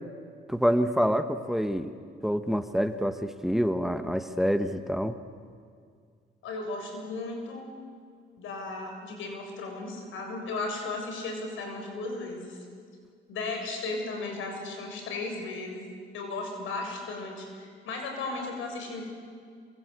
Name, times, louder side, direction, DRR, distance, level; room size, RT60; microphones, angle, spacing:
voice 1, 0.5-1.9 2.2-5.2, equal, ahead, 9 dB, 1.4 m, -27 dB
voice 2, 6.4-7.7 8.4-12.6 13.3-19.0, left 3 dB, 80° left, 3 dB, 7.2 m, -35 dB
28.0 x 25.5 x 8.3 m, 2.1 s
cardioid pair, 90°, 20 cm